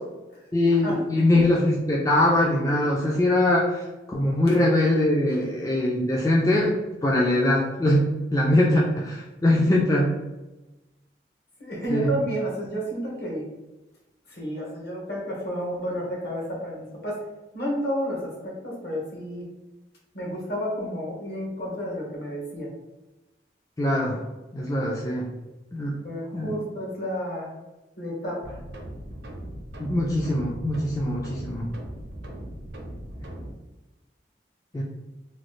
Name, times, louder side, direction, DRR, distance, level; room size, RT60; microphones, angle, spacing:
voice 1, 0.5-10.1 11.9-12.1 23.8-24.2 24.5-25.3 25.7-26.0 26.3-26.5 29.8-31.7 34.7-34.8, left 1 dB, 20° left, -3 dB, 0.3 m, -22 dB
voice 2, 11.6-13.5 14.3-17.2 17.5-19.4 20.1-22.7 26.0-27.5 28.0-28.5, equal, 60° left, -3 dB, 1.1 m, -31 dB
sound 1, 28.4-33.5, right 1 dB, 80° right, 0.6 m, -39 dB
3.1 x 2.4 x 3.0 m, 1.0 s
head